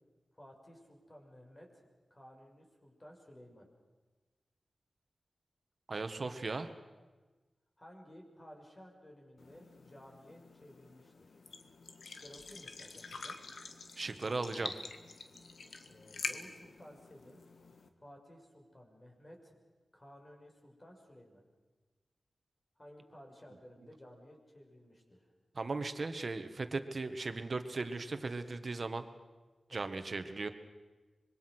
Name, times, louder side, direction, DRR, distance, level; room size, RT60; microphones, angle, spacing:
voice 1, 0.3-1.8 2.1-3.7 7.8-11.3 12.0-13.3 15.8-17.4 18.0-19.6 19.9-21.4 22.8-25.3 29.7-29.9, equal, 30° left, 1 dB, 5.8 m, -56 dB
voice 2, 5.9-6.7 14.0-14.7 25.5-29.1 29.7-30.5, right 3 dB, 55° right, 9 dB, 1.6 m, -37 dB
sound 1, 9.4-17.9, left 4 dB, 75° left, 1.7 m, -47 dB
25.5 x 22.0 x 6.2 m, 1.3 s
cardioid pair, 65°, 0 cm